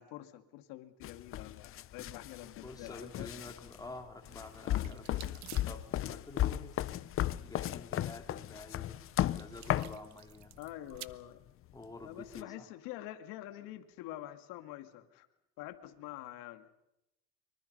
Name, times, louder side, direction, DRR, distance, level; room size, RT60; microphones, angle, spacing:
voice 1, 0.0-3.3 4.8-5.0 10.6-11.4 12.0-15.3 15.6-16.7, left 14 dB, 80° left, 8 dB, 2.3 m, -46 dB
sound 1, 1.0-10.0 11.0-11.1 12.3-12.4, left 13 dB, 40° left, 0.7 m, -35 dB
voice 2, 2.4-6.9 7.4-9.0 9.3-10.5 11.7-12.7, left 2 dB, 10° left, 4 dB, 3.5 m, -49 dB
sound 2, 4.4-11.1, right 15 dB, 55° right, 1.0 m, -54 dB
25.0 x 24.0 x 5.5 m, 0.88 s
cardioid pair, 125°, 33 cm